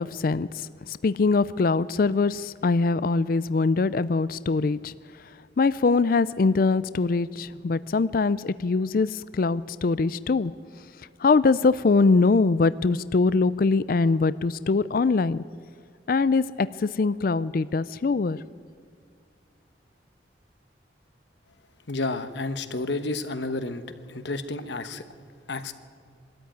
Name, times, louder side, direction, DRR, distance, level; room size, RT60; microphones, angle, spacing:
voice 1, 0.0-4.9 5.6-10.5 11.2-15.4 16.1-18.4, left 4 dB, 50° left, 17 dB, 0.4 m, -23 dB
voice 2, 21.9-25.0 25.5-25.7, left 2 dB, 75° left, 10 dB, 1.2 m, -31 dB
22.0 x 13.5 x 9.2 m, 2.3 s
head